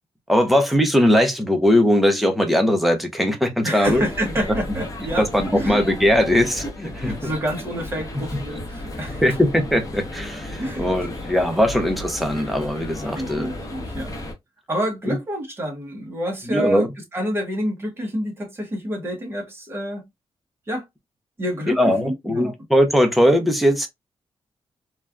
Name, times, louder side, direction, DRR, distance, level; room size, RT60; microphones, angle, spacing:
voice 1, 0.3-4.0 5.2-7.1 9.2-13.5 15.1-15.2 16.5-16.9 21.8-23.9, equal, ahead, 0.5 m, -19 dB
voice 2, 3.6-5.3 5.5-5.8 6.9-9.4 10.6-10.9 13.1-14.2 14.7-20.1 20.7-20.9 21.4-22.5, equal, 25° right, 1.0 m, -28 dB
sound 1, 3.8-14.3, left 1 dB, 35° left, 0.8 m, -34 dB
3.2 x 2.3 x 2.3 m
wide cardioid pair, 165°, 10 cm